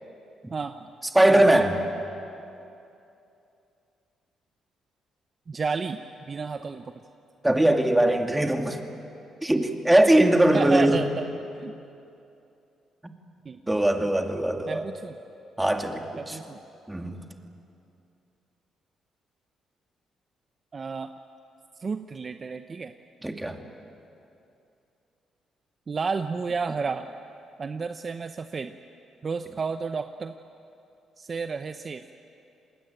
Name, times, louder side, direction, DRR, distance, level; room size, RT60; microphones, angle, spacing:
voice 1, 0.5-0.9 1.3-1.4 5.5-6.0 6.3-6.9 10.5-11.2 11.6-11.7 13.5-13.7 14.7-15.1 16.1-16.6 20.7-21.1 21.8-22.9 25.9-27.1 27.6-28.7 29.2-30.3 31.2-32.0, right 5 dB, 40° right, 8 dB, 0.8 m, -31 dB
voice 2, 1.1-1.8 7.4-8.8 9.4-11.0 13.7-14.8 15.6-16.4 16.9-17.2 23.2-23.6, right 1 dB, 10° right, 4 dB, 2.4 m, -21 dB
28.0 x 20.5 x 9.0 m, 2.7 s
cardioid pair, 90°, 0 cm